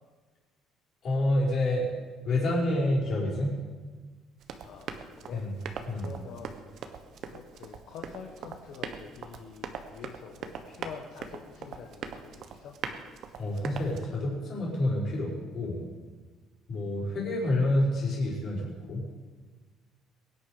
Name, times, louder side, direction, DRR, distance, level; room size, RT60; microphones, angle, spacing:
voice 1, 1.0-1.9 2.2-3.6 5.3-5.5 5.9-6.1 13.4-15.8 16.7-19.1, left 1 dB, 40° left, -3 dB, 5.2 m, -28 dB
Run, 4.4-14.0, right 6 dB, 50° right, 1.2 m, -41 dB
voice 2, 4.6-6.8 7.3-12.8, left 6 dB, 60° left, 1 dB, 1.5 m, -46 dB
22.5 x 10.0 x 5.1 m, 1.4 s
cardioid pair, 165°, 0 cm